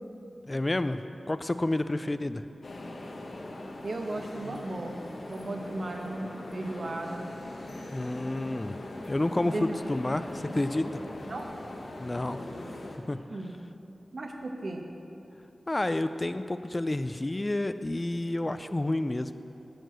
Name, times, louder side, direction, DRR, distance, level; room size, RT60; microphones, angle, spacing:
voice 1, 0.5-1.0 1.3-2.4 7.9-8.8 9.1-10.9 12.0-12.5 13.1-13.2 15.7-19.3, left 1 dB, 25° left, 11 dB, 0.3 m, -29 dB
sound 1, 2.6-13.0, left 1 dB, 65° left, 1.0 m, -41 dB
voice 2, 3.8-5.0 5.3-7.3 9.5-9.8 11.3-11.5 13.3-13.5 14.1-14.9 18.5-18.8, right 2 dB, 65° right, 2 dB, 1.0 m, -36 dB
10.5 x 4.7 x 8.0 m, 3.0 s
wide cardioid pair, 80°, 0 cm